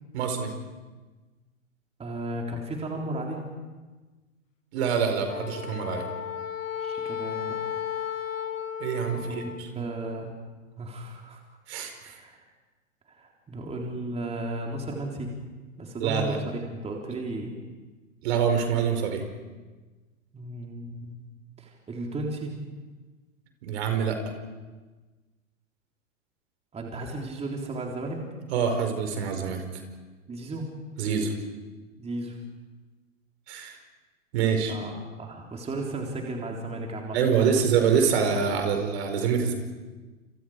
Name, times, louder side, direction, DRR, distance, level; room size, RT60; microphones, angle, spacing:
voice 1, 0.1-0.5 4.7-6.1 8.8-9.8 11.7-12.2 16.0-16.4 18.2-19.2 23.6-24.2 28.5-29.6 31.0-31.3 33.5-33.8 34.3-34.7 37.1-39.5, right 6 dB, 55° right, 5 dB, 5.2 m, -25 dB
voice 2, 2.0-3.4 6.8-7.6 9.1-10.3 10.8-11.4 12.1-12.4 13.1-15.4 15.8-17.6 20.3-21.2 21.6-22.6 26.7-28.3 30.3-30.6 32.0-32.5 34.7-37.5, right 2 dB, 15° right, 0 dB, 3.9 m, -35 dB
Wind instrument woodwind instrument, 5.3-9.7, left 9 dB, 70° left, 1.8 m, -34 dB
29.5 x 29.0 x 5.0 m, 1.3 s
figure-of-eight pair, 105°, 39 cm